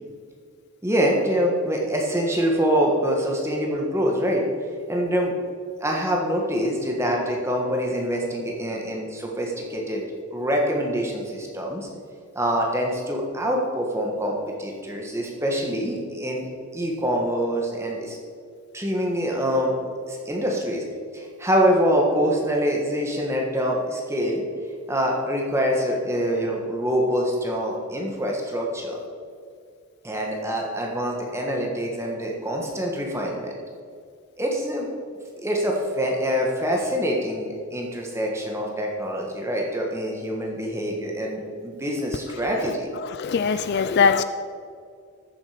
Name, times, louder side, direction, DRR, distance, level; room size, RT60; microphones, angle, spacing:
voice 1, 0.8-4.5 4.9-5.3 5.8-10.0 10.3-11.9 12.3-18.2 18.7-20.8 21.1-24.4 24.9-29.0 30.0-33.6 34.4-34.9 35.4-42.9, equal, 10° right, 0 dB, 1.5 m, -25 dB
voice 2, 43.0-44.2, left 5 dB, 50° left, 11 dB, 0.4 m, -21 dB
14.0 x 7.5 x 5.1 m, 2.2 s
head